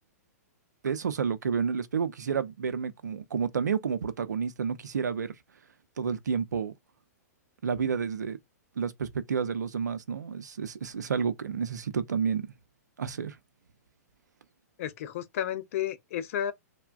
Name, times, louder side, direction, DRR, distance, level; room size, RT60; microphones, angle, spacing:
voice 1, 0.8-5.4 6.0-6.7 7.6-8.4 8.8-12.5 13.0-13.4, right 6 dB, 85° right, 0.5 m, -30 dB
voice 2, 14.8-16.5, left 10 dB, 55° left, 0.6 m, -32 dB
3.3 x 2.1 x 2.3 m
hypercardioid pair, 125°, 9 cm